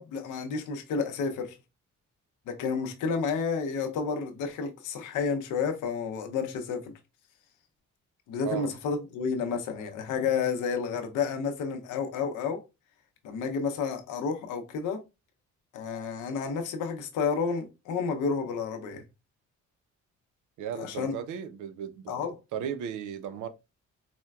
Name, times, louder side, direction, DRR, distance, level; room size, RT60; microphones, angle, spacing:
voice 1, 0.0-1.6 2.5-6.9 8.3-12.6 13.2-15.0 15.7-19.0 20.7-21.1 22.1-22.3, left 5 dB, 85° left, 0.7 m, -30 dB
voice 2, 8.4-8.7 20.6-23.5, right 8 dB, 80° right, 0.5 m, -36 dB
4.2 x 2.2 x 2.2 m
cardioid pair, 90°, 30 cm